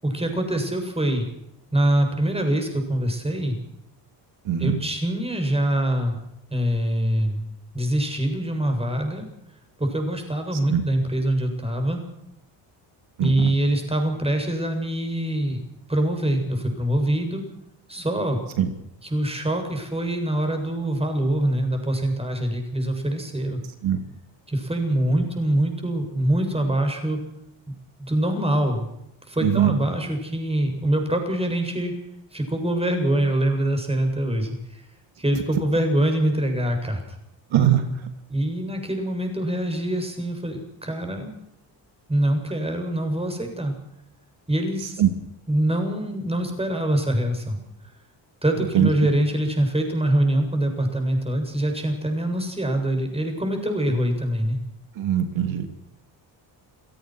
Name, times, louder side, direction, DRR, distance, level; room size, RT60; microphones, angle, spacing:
voice 1, 0.0-1.3 1.7-3.6 4.6-6.2 6.5-7.4 7.7-9.3 9.8-12.0 13.2-15.6 15.9-17.4 17.9-18.4 19.0-23.6 24.5-27.2 28.0-28.9 29.3-31.9 32.3-34.8 35.2-37.2 38.3-41.3 42.1-43.7 44.5-45.0 45.5-47.6 48.4-54.6, right 1 dB, 10° right, 5 dB, 7.5 m, -24 dB
voice 2, 4.5-4.8 10.7-10.8 13.2-13.5 18.6-18.7 23.8-24.0 29.4-29.7 37.5-37.8 45.0-45.1 48.7-48.9 55.0-55.7, right 10 dB, 80° right, 7 dB, 2.9 m, -20 dB
28.5 x 17.5 x 6.3 m, 0.81 s
cardioid pair, 105°, 46 cm